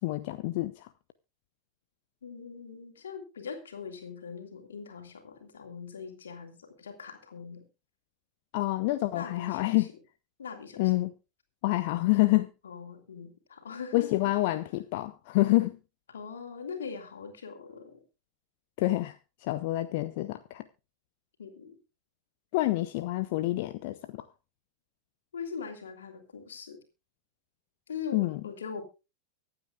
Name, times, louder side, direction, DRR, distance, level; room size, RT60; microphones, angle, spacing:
voice 1, 0.0-0.9 8.5-9.9 10.8-11.1 11.6-12.5 13.9-15.8 18.8-19.2 19.4-20.6 22.5-24.3 28.1-28.4, left 18 dB, 50° left, 0.7 m, -27 dB
voice 2, 2.2-7.6 9.1-9.9 10.4-10.9 12.6-14.1 16.1-18.0 21.4-21.8 25.3-26.8 27.9-28.8, left 6 dB, 65° left, 3.1 m, -41 dB
24.0 x 8.9 x 2.4 m
figure-of-eight pair, 90°, 0 cm